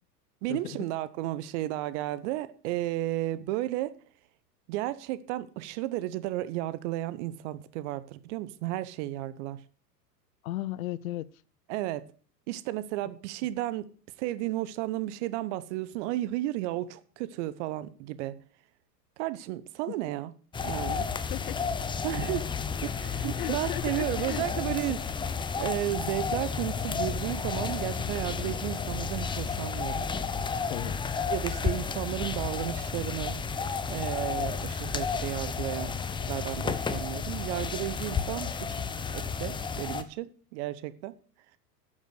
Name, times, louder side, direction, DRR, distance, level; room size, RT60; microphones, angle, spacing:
voice 1, 0.4-3.9 4.7-9.6 11.7-12.0 12.5-13.9 14.2-18.3 19.2-20.3 20.6-21.1 22.0-22.5 22.8-25.0 25.6-30.1 31.3-33.4 33.9-36.0 36.3-38.7 39.1-41.1, right 15 dB, 45° right, 1.0 m, -33 dB
voice 2, 10.4-11.3 19.9-20.0 21.3-21.6 23.4-25.0 30.7-31.0, left 15 dB, 55° left, 0.7 m, -36 dB
sound 1, 20.5-40.0, left 5 dB, 10° left, 0.6 m, -32 dB
11.5 x 7.4 x 6.4 m
figure-of-eight pair, 90°, 49 cm